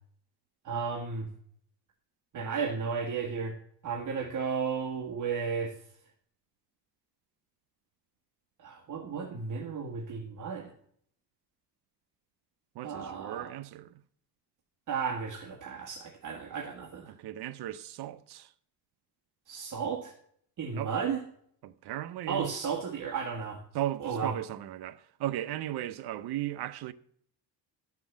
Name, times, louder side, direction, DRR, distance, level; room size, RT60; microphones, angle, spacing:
voice 1, 0.6-1.3 2.3-3.5 3.8-5.7 8.6-10.7 12.8-13.6 14.9-17.1 19.5-20.1 20.6-21.2 22.3-23.6 24.0-24.3, right 6 dB, 50° right, 1.6 m, -34 dB
voice 2, 12.7-13.9 17.1-18.5 20.7-20.9 21.6-22.5 23.7-26.9, right 13 dB, 80° right, 0.8 m, -36 dB
12.5 x 6.0 x 7.3 m
cardioid pair, 160°, 38 cm